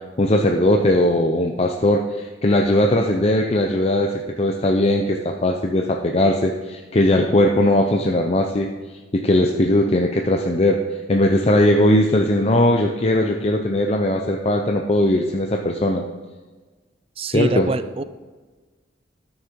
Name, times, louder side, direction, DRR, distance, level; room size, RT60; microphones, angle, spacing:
voice 1, 0.2-8.7 9.1-10.8 11.1-16.0 17.3-17.7, left 1 dB, 35° left, 2 dB, 0.6 m, -19 dB
voice 2, 17.2-18.0, right 3 dB, 30° right, 13 dB, 0.4 m, -25 dB
13.0 x 6.5 x 4.6 m, 1.3 s
head